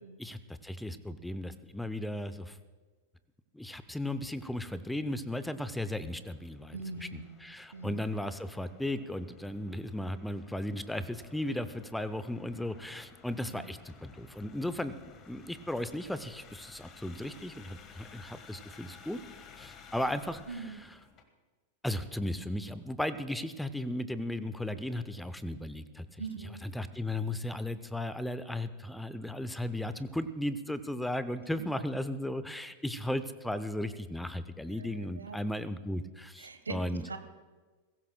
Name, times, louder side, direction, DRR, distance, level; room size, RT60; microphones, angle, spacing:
voice 1, 0.2-2.6 3.5-14.9 15.3-19.2 19.6-20.7 21.8-26.2 26.6-37.0, left 1 dB, 5° left, 13 dB, 0.6 m, -36 dB
sound 1, 5.6-21.2, left 6 dB, 30° left, 1.4 m, -55 dB
voice 2, 6.7-7.5 7.7-8.0 13.4-13.7 20.5-20.8 26.2-26.6 31.6-31.7 34.7-35.4 36.4-36.8 37.0-37.2, right 4 dB, 75° right, 9 dB, 1.2 m, -42 dB
21.5 x 16.5 x 2.2 m, 1.3 s
figure-of-eight pair, 90°, 0 cm